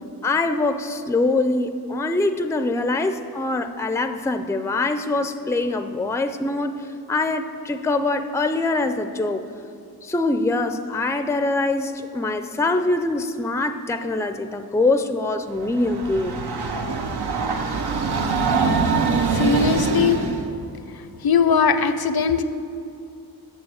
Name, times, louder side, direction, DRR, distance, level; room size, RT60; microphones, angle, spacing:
voice 1, 0.2-6.8 7.1-9.4 10.0-16.4, left 2 dB, 10° left, 9 dB, 0.4 m, -23 dB
Train, 15.6-20.5, right 4 dB, 85° right, 0.8 m, -23 dB
voice 2, 19.3-20.2 21.2-22.4, left 6 dB, 70° left, 11 dB, 0.6 m, -19 dB
7.5 x 7.2 x 7.8 m, 2.6 s
wide cardioid pair, 90°, 38 cm